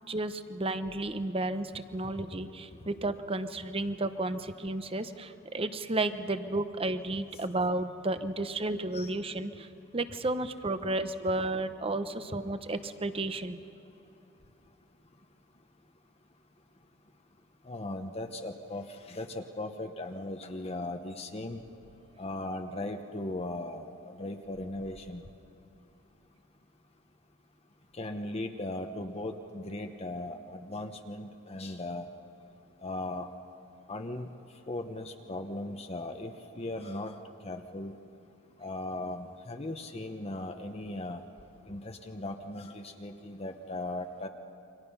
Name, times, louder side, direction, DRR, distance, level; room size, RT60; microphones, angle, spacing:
voice 1, 0.1-9.7 9.9-13.6, right 2 dB, 30° right, 10 dB, 0.9 m, -32 dB
voice 2, 17.7-21.6 22.2-25.2 28.0-32.0 32.8-33.3 33.9-34.3 34.7-37.1 37.4-37.9 38.6-41.2 41.7-44.3, left 2 dB, 30° left, 5 dB, 0.9 m, -38 dB
29.0 x 25.0 x 5.6 m, 2.8 s
head